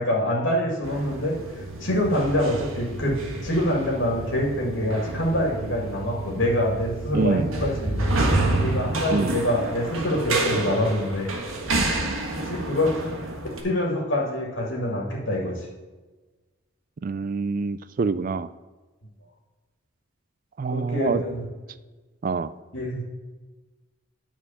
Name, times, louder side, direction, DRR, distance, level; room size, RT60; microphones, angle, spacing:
voice 1, 0.0-3.2 3.4-8.1 8.6-11.3 12.4-13.1 13.5-15.7 20.7-21.5 22.7-23.1, left 1 dB, 65° left, -2 dB, 1.9 m, -25 dB
sound 1, 0.8-13.6, right 2 dB, 85° right, 1.5 m, -29 dB
voice 2, 7.1-7.5 9.1-9.4 17.0-18.5 20.6-21.2 22.2-22.5, right 4 dB, 40° right, 15 dB, 0.3 m, -25 dB
9.8 x 4.3 x 7.0 m, 1.3 s
head